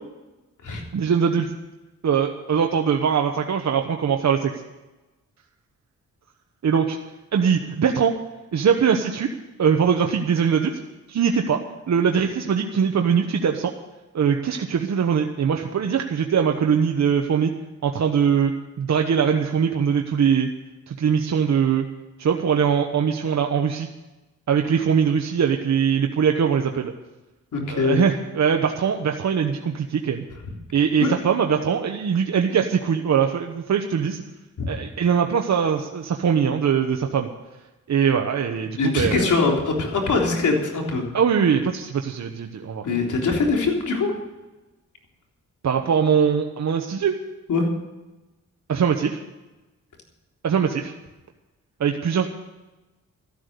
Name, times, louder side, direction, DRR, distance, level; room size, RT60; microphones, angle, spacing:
voice 1, 0.9-1.5 2.0-4.5 6.6-7.0 7.3-8.2 8.5-9.3 9.6-10.7 11.1-11.6 11.9-13.7 14.1-17.5 17.8-20.5 20.9-21.9 22.2-23.9 24.5-26.9 27.7-30.2 30.7-34.2 34.7-37.3 37.9-39.3 41.1-42.9 45.6-47.2 48.7-49.2 50.4-50.9 51.8-52.3, right 7 dB, 60° right, 4 dB, 1.1 m, -21 dB
voice 2, 27.5-28.0 31.0-31.1 34.6-34.7 38.8-41.0 42.8-44.1 47.5-47.7, left 3 dB, 70° left, 0 dB, 3.7 m, -22 dB
13.0 x 12.0 x 6.8 m, 1.1 s
cardioid pair, 80°, 31 cm